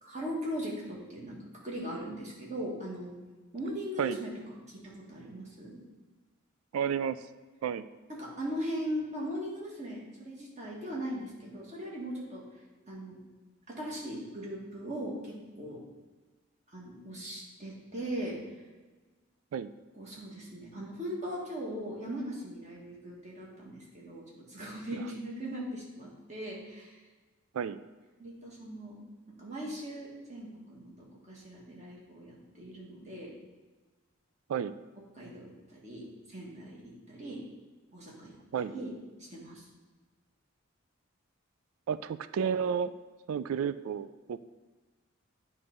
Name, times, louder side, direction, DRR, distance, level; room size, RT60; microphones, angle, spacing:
voice 1, 0.0-1.4 1.6-3.1 3.5-4.3 4.7-5.8 8.2-12.4 12.9-13.2 13.7-15.8 16.7-18.4 20.0-26.9 28.2-29.0 29.4-33.3 35.1-37.4 37.9-38.9 39.2-39.7, equal, 35° right, -4 dB, 1.7 m, -39 dB
voice 2, 6.7-7.2 7.6-7.8 19.5-19.7 24.9-25.0 27.5-27.8 34.5-34.8 38.5-38.7 41.9-42.9 43.3-44.4, right 7 dB, 85° right, 14 dB, 0.3 m, -31 dB
8.9 x 3.3 x 5.2 m, 1.3 s
head